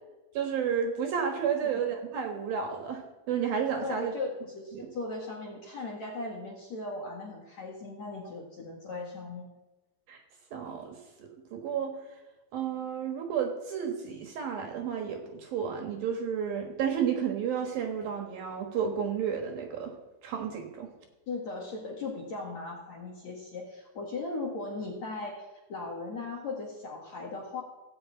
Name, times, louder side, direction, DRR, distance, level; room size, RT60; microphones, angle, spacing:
voice 1, 0.3-4.1 4.7-4.9 10.1-10.2 10.5-11.9 12.5-19.9 20.2-20.9, right 7 dB, 65° right, 3 dB, 2.8 m, -32 dB
voice 2, 3.8-9.5 21.3-27.6, left 3 dB, 55° left, -1 dB, 2.2 m, -38 dB
17.5 x 6.6 x 8.5 m, 1.1 s
omnidirectional pair, 5.4 m